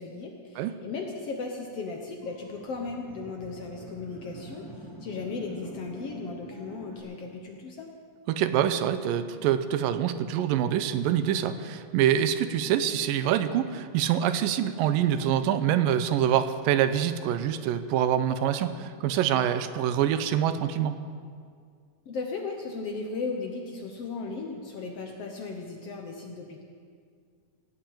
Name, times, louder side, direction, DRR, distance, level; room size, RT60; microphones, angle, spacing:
voice 1, 0.0-4.7 5.0-7.9 22.0-26.6, left 4 dB, 60° left, 2 dB, 1.7 m, -36 dB
sound 1, 2.2-7.0, right 1 dB, 5° left, 4.3 m, -45 dB
voice 2, 8.3-21.0, right 10 dB, 85° right, 11 dB, 2.4 m, -25 dB
17.5 x 8.7 x 8.7 m, 2.1 s
omnidirectional pair, 3.9 m